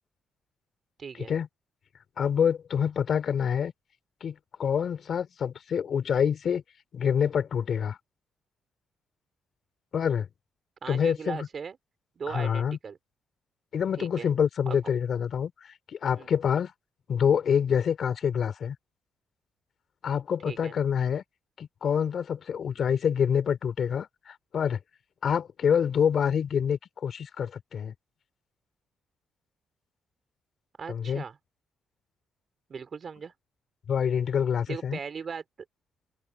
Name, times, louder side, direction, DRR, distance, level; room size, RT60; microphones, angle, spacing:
voice 1, 1.0-1.3 10.8-11.8 12.2-13.0 14.0-14.3 14.7-14.8 16.1-16.3 20.5-20.8 30.8-31.4 32.7-33.3 34.7-35.4, right 6 dB, 40° right, 5.3 m, -38 dB
voice 2, 2.2-3.7 4.2-6.6 6.9-8.0 9.9-10.3 10.9-11.5 12.3-12.8 13.7-16.7 17.1-18.8 20.0-21.2 21.6-24.8 25.2-27.9 30.9-31.2 33.9-35.0, left 7 dB, 50° left, 4.1 m, -26 dB
cardioid pair, 125°, 0 cm